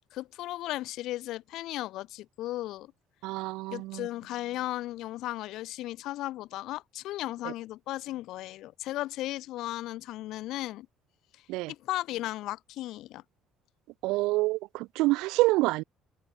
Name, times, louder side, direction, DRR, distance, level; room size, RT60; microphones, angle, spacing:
voice 1, 0.1-2.9 3.7-10.9 11.7-13.2, left 15 dB, 65° left, 0.7 m, -35 dB
voice 2, 3.2-4.0 7.4-7.5 11.5-11.7 14.0-15.8, right 21 dB, 80° right, 0.4 m, -27 dB
cardioid pair, 155°, 0 cm